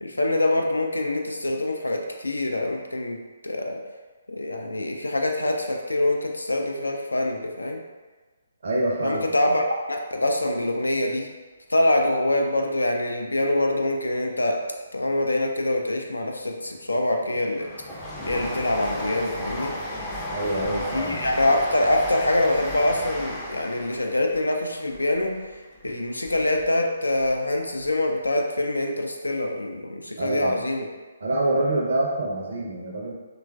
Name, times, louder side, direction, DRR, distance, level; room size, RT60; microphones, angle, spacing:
voice 1, 0.0-3.2 3.4-3.8 4.3-7.8 9.0-11.3 11.7-14.6 14.9-17.7 18.3-19.7 20.5-25.4 25.8-30.9, left 1 dB, 85° left, 2 dB, 0.4 m, -25 dB
voice 2, 8.6-9.2 20.3-21.3 30.2-30.5 31.2-33.1, right 2 dB, 55° right, -3 dB, 0.5 m, -26 dB
Train, 16.5-26.7 27.1-28.0 28.2-28.3, equal, 15° left, 0.4 m, -35 dB
3.0 x 2.3 x 2.2 m, 1.3 s
figure-of-eight pair, 135°, 0 cm